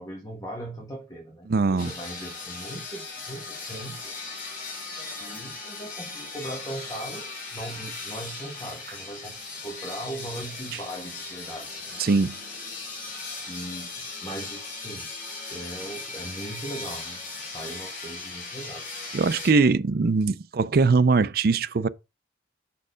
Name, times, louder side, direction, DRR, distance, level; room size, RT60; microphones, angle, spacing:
voice 1, 0.0-4.1 5.2-12.0 13.5-15.1 15.5-18.9, right 1 dB, 20° left, 1.7 m, -39 dB
voice 2, 1.5-1.9 12.0-12.4 19.1-21.9, right 4 dB, 50° right, 0.4 m, -21 dB
sound 1, 1.8-19.5, left 3 dB, 45° left, 2.3 m, -38 dB
6.0 x 4.6 x 5.0 m
head